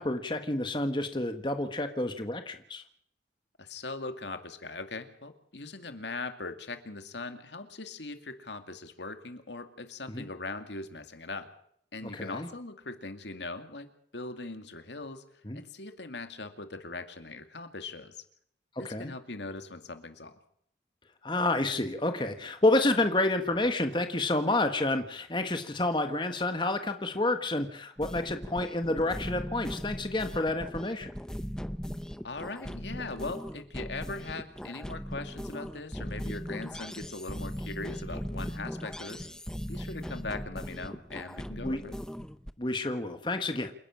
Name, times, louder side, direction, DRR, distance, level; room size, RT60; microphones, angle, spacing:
voice 1, 0.0-2.8 10.1-10.2 12.1-12.5 15.5-15.6 18.8-19.1 21.2-31.1 41.6-41.8 42.6-43.7, left 2 dB, 25° left, 7 dB, 1.4 m, -29 dB
voice 2, 3.6-11.5 11.9-13.9 14.1-15.2 15.5-18.2 18.8-20.4 32.2-39.3 39.7-42.0, left 3 dB, 80° left, 8 dB, 2.3 m, -40 dB
sound 1, 28.0-42.5, equal, 5° left, 0.7 m, -39 dB
28.0 x 11.0 x 8.8 m, 0.67 s
head